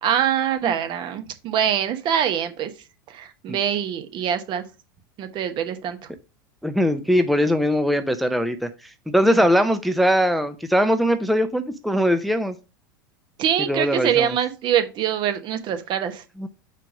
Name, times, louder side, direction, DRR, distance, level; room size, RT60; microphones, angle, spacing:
voice 1, 0.0-2.7 3.1-4.6 5.2-6.0 13.4-16.2, right 9 dB, 45° right, 1.1 m, -24 dB
voice 2, 6.6-8.7 9.1-12.5 13.6-14.4 16.4-16.5, equal, ahead, 0.5 m, -21 dB
5.1 x 4.5 x 5.0 m
hypercardioid pair, 95°, 11 cm